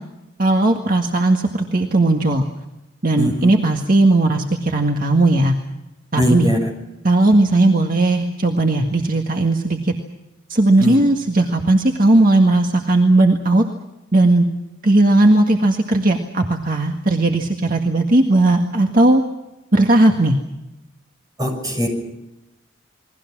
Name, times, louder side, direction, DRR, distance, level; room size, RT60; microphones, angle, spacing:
voice 1, 0.4-2.5 3.0-5.5 6.1-6.5 7.0-9.9 10.5-13.6 14.1-14.5 14.8-19.2 19.7-20.4, right 2 dB, 45° right, 3 dB, 1.8 m, -16 dB
voice 2, 3.2-3.5 6.2-6.7 10.8-11.0 21.4-21.9, equal, 20° right, 3 dB, 6.6 m, -20 dB
29.0 x 22.0 x 6.2 m, 0.96 s
head